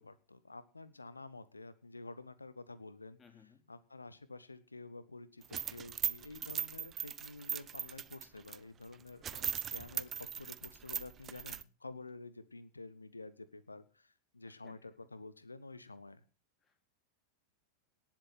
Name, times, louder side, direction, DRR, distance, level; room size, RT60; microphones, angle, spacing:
voice 1, 0.0-16.2, left 3 dB, 80° left, 16 dB, 1.2 m, -50 dB
voice 2, 3.2-3.6 14.6-14.8 16.6-16.8, left 6 dB, 20° left, 7 dB, 2.9 m, -60 dB
sound 1, 5.4-8.6 8.9-9.0 9.2-11.6, right 9 dB, 25° right, 0.5 m, -39 dB
18.5 x 7.4 x 5.8 m, 0.35 s
figure-of-eight pair, 90°, 0 cm